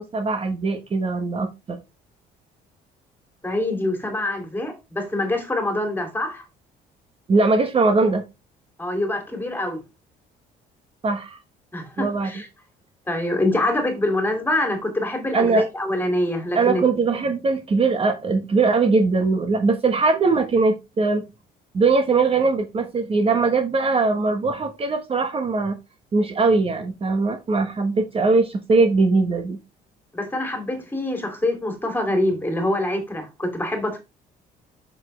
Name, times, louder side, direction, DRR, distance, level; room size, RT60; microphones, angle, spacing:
voice 1, 0.0-1.8 7.3-8.2 11.0-11.4 12.0-12.3 15.3-15.6 16.5-21.2 21.7-25.7 26.1-29.6, right 3 dB, 35° right, 1.3 m, -21 dB
voice 2, 3.4-6.4 8.8-9.8 11.7-12.5 13.1-16.8 30.1-34.0, left 1 dB, 10° left, 2.7 m, -25 dB
7.2 x 6.4 x 3.3 m
cardioid pair, 110°, 17 cm